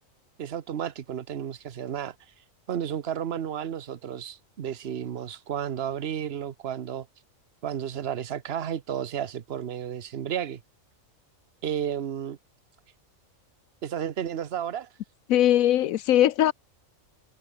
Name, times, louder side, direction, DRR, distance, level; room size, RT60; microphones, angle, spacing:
voice 1, 0.4-2.1 2.7-7.1 7.6-10.6 11.6-12.4 13.8-14.9, right 9 dB, 50° right, 1.1 m, -32 dB
voice 2, 15.3-16.5, left 12 dB, 85° left, 1.1 m, -20 dB
omnidirectional pair, 1.4 m